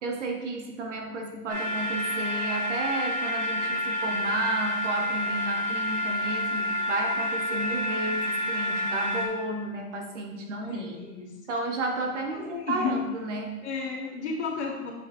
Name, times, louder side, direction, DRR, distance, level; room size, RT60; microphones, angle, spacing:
voice 1, 0.0-11.0 11.5-13.6, right 2 dB, 50° right, 3 dB, 0.9 m, -32 dB
sound 1, 1.5-9.3, left 1 dB, 30° right, 1.2 m, -29 dB
voice 2, 10.6-11.3 12.3-13.0 13.6-14.9, left 5 dB, 45° left, -1 dB, 1.3 m, -32 dB
7.0 x 5.2 x 2.6 m, 1.2 s
hypercardioid pair, 175°, 45 cm